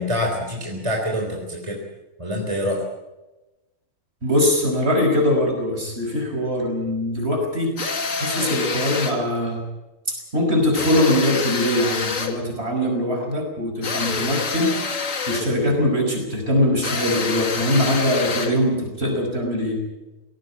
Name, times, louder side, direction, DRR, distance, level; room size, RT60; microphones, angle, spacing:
voice 1, 0.0-1.8 2.2-2.8, left 1 dB, 25° right, 0 dB, 3.8 m, -25 dB
voice 2, 4.2-7.7 8.2-9.6 10.1-14.8 15.3-19.8, left 1 dB, 50° right, 2 dB, 5.9 m, -22 dB
sound 1, 7.8-9.2 10.7-12.4 13.8-15.6 16.8-18.6, left 4 dB, 85° left, 2.3 m, -27 dB
18.5 x 17.5 x 9.0 m, 1.0 s
omnidirectional pair, 1.3 m